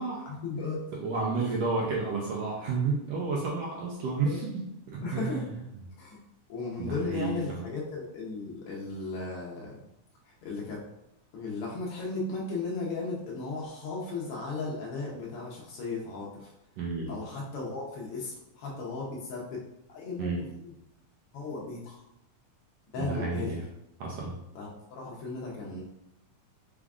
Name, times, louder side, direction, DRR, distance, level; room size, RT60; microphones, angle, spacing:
voice 1, 0.3-0.8 1.4-1.5 4.2-4.4 5.0-5.5 6.0-6.2 6.5-9.8 10.2-10.8 11.3-16.5 17.1-19.6 19.9-20.5 21.3-22.0 22.9-23.6 24.5-25.8, left 3 dB, 85° left, -3 dB, 1.2 m, -36 dB
voice 2, 1.0-4.5 4.9-5.4 6.8-7.6 16.8-17.1 20.2-20.4 23.0-23.6 24.0-24.4, right 3 dB, 80° right, -3 dB, 1.4 m, -31 dB
5.0 x 2.4 x 3.5 m, 0.84 s
omnidirectional pair, 3.6 m